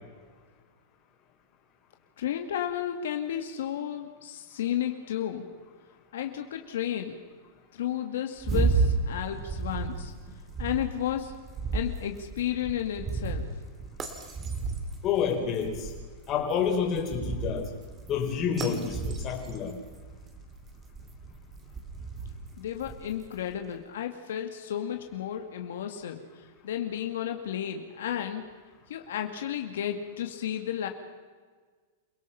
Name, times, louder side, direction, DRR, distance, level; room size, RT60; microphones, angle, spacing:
voice 1, 2.2-5.5 6.1-7.2 7.7-10.1 10.6-11.3 11.7-13.5 22.6-26.2 26.6-28.4 28.9-30.9, left 10 dB, 80° left, 5 dB, 2.1 m, -32 dB
sound 1, 8.4-23.6, right 4 dB, 15° right, 2.3 m, -33 dB
voice 2, 15.0-15.9 16.3-17.7 18.1-19.7, left 7 dB, 25° left, 1 dB, 4.3 m, -28 dB
28.5 x 18.0 x 5.7 m, 1.5 s
supercardioid pair, 160°, 0 cm